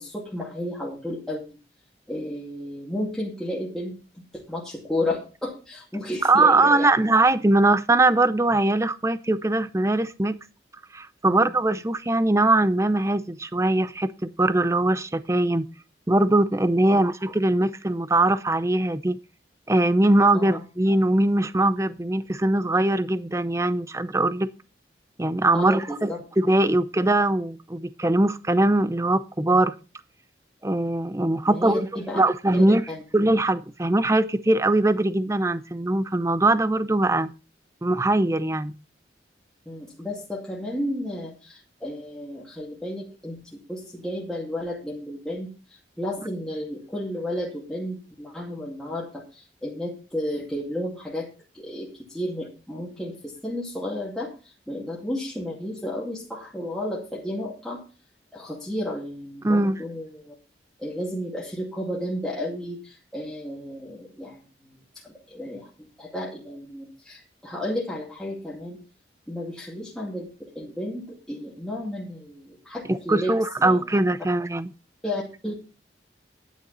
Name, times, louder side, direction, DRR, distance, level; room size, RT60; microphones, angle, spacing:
voice 1, 0.0-1.6 2.1-7.0 11.2-11.5 16.9-17.0 20.3-20.6 25.5-26.2 31.5-32.2 32.5-33.0 39.7-51.3 51.5-57.8 58.3-60.3 60.8-64.8 65.0-65.7 66.0-68.8 69.3-74.0 75.0-75.5, left 1 dB, 5° left, 2.3 m, -33 dB
voice 2, 6.2-10.4 10.9-15.7 16.1-19.2 19.7-24.5 25.2-29.7 30.6-31.9 32.1-32.8 33.1-37.3 37.8-38.7 59.4-59.8 72.9-74.7, right 2 dB, 15° right, 0.5 m, -21 dB
11.0 x 9.3 x 4.0 m
head